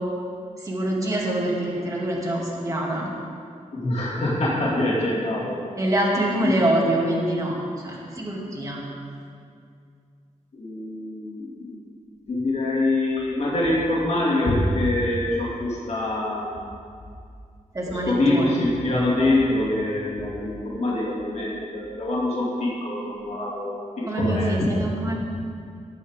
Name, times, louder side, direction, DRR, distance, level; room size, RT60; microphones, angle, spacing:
voice 1, 0.6-3.1 5.8-7.6 7.8-8.8 17.7-18.6 19.2-19.3 24.1-25.2, right 1 dB, 25° right, -4 dB, 2.2 m, -25 dB
voice 2, 3.7-5.6 6.4-6.6 10.5-11.7 12.3-16.5 17.9-24.7, left 1 dB, 55° left, -5 dB, 2.4 m, -24 dB
18.5 x 8.4 x 3.7 m, 2.3 s
wide cardioid pair, 135°, 13 cm